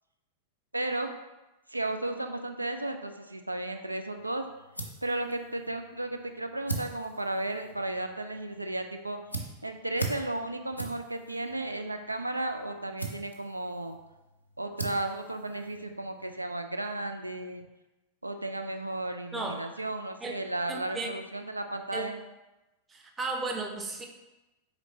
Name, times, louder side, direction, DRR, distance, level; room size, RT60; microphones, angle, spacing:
voice 1, 0.7-1.1 1.7-4.4 5.0-9.2 9.6-14.0 14.6-17.6 18.2-22.2, right 2 dB, 85° right, 6 dB, 0.3 m, -34 dB
sound 1, 4.2-16.3, right 3 dB, 90° left, 0.5 m, -42 dB
voice 2, 20.7-21.1 21.9-22.1 22.9-24.1, right 3 dB, 15° right, 2 dB, 0.6 m, -34 dB
4.1 x 3.1 x 3.7 m, 1.0 s
figure-of-eight pair, 90°, 0 cm